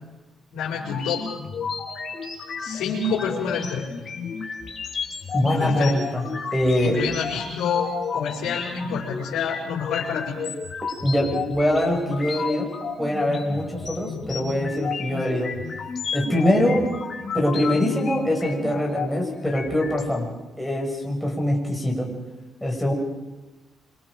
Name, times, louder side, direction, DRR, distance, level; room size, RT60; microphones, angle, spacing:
voice 1, 0.5-1.2 2.6-3.9 5.6-6.0 6.8-10.4, left 6 dB, 85° left, -7 dB, 5.4 m, -28 dB
sound 1, 0.8-20.0, left 6 dB, 45° left, 4.0 m, -32 dB
voice 2, 5.3-6.2 6.5-7.0 11.0-12.7 13.0-15.5 16.1-16.9 17.3-20.3 20.6-22.1 22.6-22.9, left 1 dB, ahead, -2 dB, 6.7 m, -23 dB
26.5 x 26.5 x 5.2 m, 1.1 s
cardioid pair, 90°, 0 cm